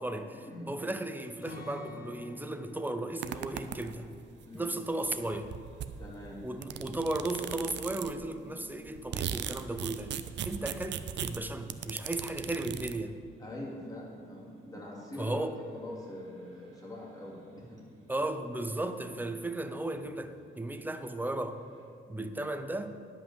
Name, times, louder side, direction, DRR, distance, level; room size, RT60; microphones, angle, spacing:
voice 1, 0.0-4.1 4.5-5.5 6.4-10.2 10.4-13.1 15.2-15.6 18.1-21.6 22.1-22.9, right 2 dB, 10° right, 8 dB, 0.7 m, -35 dB
Acoustic guitar, 1.4-7.3 7.6-7.8 8.3-8.8, left 2 dB, 45° left, 1.8 m, -50 dB
sound 1, 3.2-4.2 5.1-5.2 5.3-8.3 8.7-13.0, right 9 dB, 65° right, 0.6 m, -38 dB
sound 2, 3.3-21.9, right 2 dB, 90° right, 1.8 m, -60 dB
voice 2, 6.0-6.4 13.4-17.8 22.1-22.3, left 1 dB, 20° left, -4 dB, 3.0 m, -43 dB
10.5 x 5.5 x 7.5 m, 2.4 s
cardioid pair, 90°, 20 cm